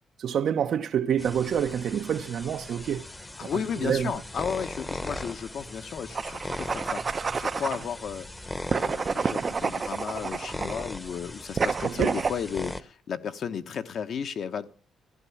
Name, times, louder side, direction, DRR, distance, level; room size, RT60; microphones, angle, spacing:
voice 1, 0.2-3.0 3.4-3.5 3.8-4.1 11.8-12.2, right 8 dB, 65° right, 0.8 m, -27 dB
sound 1, 1.2-12.8, left 1 dB, 15° left, 1.0 m, -39 dB
voice 2, 3.4-7.0 7.4-8.3 8.7-14.7, left 7 dB, 60° left, 1.2 m, -34 dB
sound 2, 6.1-7.8 8.7-10.8 11.6-12.4, right 5 dB, 35° right, 0.6 m, -29 dB
15.0 x 11.0 x 7.1 m
cardioid pair, 90°, 0 cm